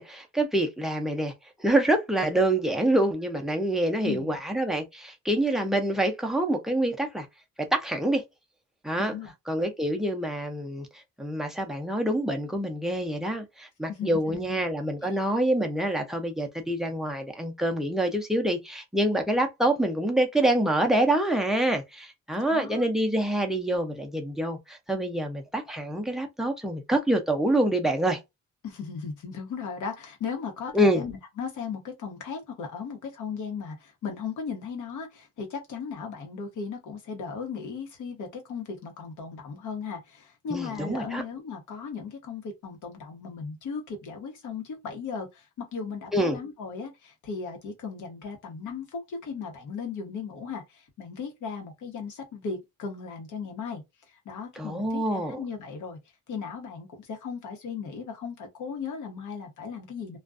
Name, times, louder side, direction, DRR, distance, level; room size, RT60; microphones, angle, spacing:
voice 1, 0.0-1.3 1.6-7.3 7.7-8.2 8.8-9.2 9.5-10.9 11.2-28.2 30.7-31.0 40.5-41.2 46.1-46.4 54.6-55.4, right 1 dB, ahead, 0.5 m, -26 dB
voice 2, 4.0-4.4 9.0-9.3 13.9-14.6 15.0-15.2 22.3-22.9 28.6-53.8 54.1-56.0 56.3-60.2, left 5 dB, 85° left, 1.0 m, -37 dB
2.4 x 2.2 x 2.4 m
cardioid pair, 140°, 30 cm